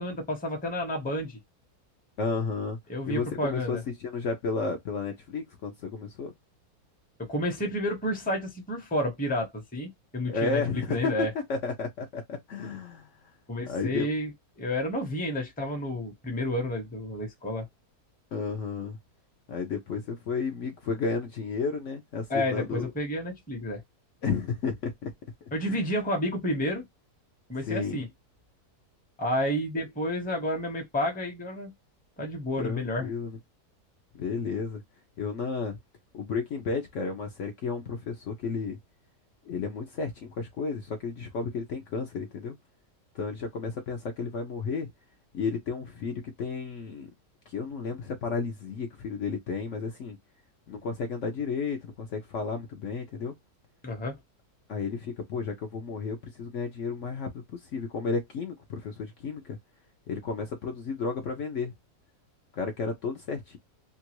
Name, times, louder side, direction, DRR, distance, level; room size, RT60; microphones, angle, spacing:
voice 1, 0.0-1.4 2.9-3.8 7.2-11.3 13.5-14.3 14.6-17.7 22.3-23.8 25.5-26.8 27.5-28.1 29.2-31.7 32.2-33.1 53.8-54.2, left 1 dB, 5° left, 0.7 m, -30 dB
voice 2, 2.2-2.8 3.1-6.3 10.3-13.1 13.6-14.1 18.3-19.0 19.5-22.9 24.2-25.1 25.6-25.9 27.7-28.0 32.6-33.4 34.2-34.8 35.2-35.8 36.1-38.8 39.4-42.6 43.1-44.9 45.3-47.1 47.5-50.2 50.7-53.3 54.7-59.6 60.1-61.7 62.5-63.6, left 4 dB, 60° left, 0.9 m, -32 dB
2.9 x 2.4 x 2.9 m
omnidirectional pair, 1.7 m